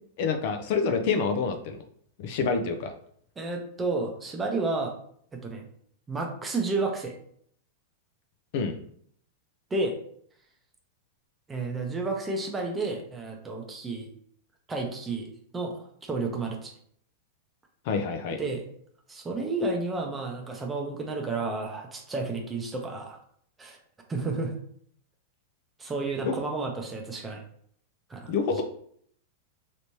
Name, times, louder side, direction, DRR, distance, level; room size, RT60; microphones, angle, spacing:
voice 1, 0.2-1.8 2.2-2.9 8.5-8.7 17.9-18.4 26.2-26.3 28.3-28.6, left 5 dB, 55° left, 5 dB, 0.5 m, -27 dB
voice 2, 3.4-4.9 5.3-5.6 6.1-7.1 9.7-10.0 11.5-14.1 14.7-15.3 15.5-16.7 18.4-18.6 19.1-23.2 23.6-23.8 24.1-24.6 25.8-27.4 28.1-28.3, right 3 dB, 15° right, 2 dB, 0.7 m, -31 dB
3.3 x 3.0 x 2.7 m, 0.64 s
hypercardioid pair, 135°, 0 cm